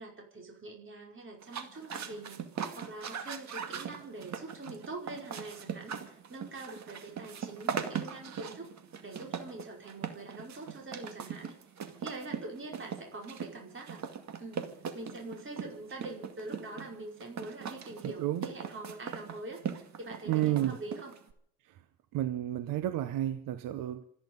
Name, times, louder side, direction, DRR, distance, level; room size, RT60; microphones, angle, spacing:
voice 1, 0.0-2.5 2.7-8.7 9.0-11.5 12.0-14.0 14.4-14.7 14.9-21.1, right 2 dB, 35° right, 5.1 m, -44 dB
sound 1, 1.4-21.3, right 7 dB, 55° right, 2.2 m, -40 dB
voice 2, 18.0-18.5 20.3-20.8 21.6-21.8 22.1-24.0, right 13 dB, 75° right, 1.0 m, -31 dB
27.0 x 10.0 x 5.4 m
supercardioid pair, 80°, 33 cm